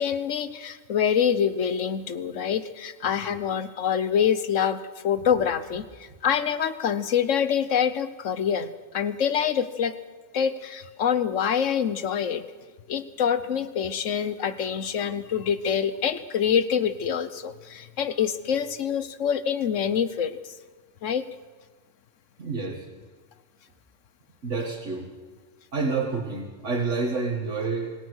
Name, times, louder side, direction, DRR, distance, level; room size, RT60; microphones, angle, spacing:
voice 1, 0.0-9.9 10.3-12.4 12.9-20.6 21.0-21.3, left 8 dB, 80° left, 13 dB, 1.3 m, -26 dB
voice 2, 22.4-22.8 24.4-25.1 25.7-27.9, right 4 dB, 70° right, -1 dB, 2.3 m, -28 dB
26.5 x 17.0 x 6.4 m, 1.5 s
omnidirectional pair, 1.3 m